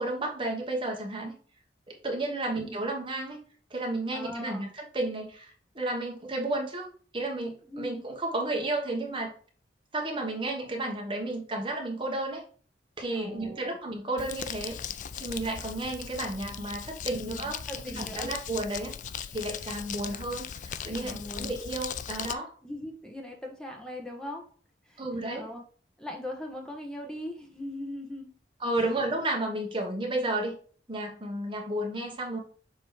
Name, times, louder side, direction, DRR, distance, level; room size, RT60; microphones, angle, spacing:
voice 1, 0.0-1.3 1.9-3.4 3.7-9.3 9.9-12.4 13.0-14.8 15.1-17.6 17.8-19.0 19.3-22.5 25.0-25.5 28.6-30.6 30.9-32.4, right 2 dB, 30° right, 1 dB, 1.2 m, -32 dB
voice 2, 2.5-2.8 4.1-4.6 7.7-8.1 13.1-13.8 17.0-18.3 21.0-21.5 22.6-24.5 24.9-25.0 25.3-25.6 26.0-28.3, left 1 dB, 5° left, 1 dB, 1.1 m, -40 dB
Crumpling crinkling, 14.2-22.3, left 8 dB, 40° left, 0.3 m, -38 dB
6.9 x 3.1 x 4.7 m, 0.43 s
head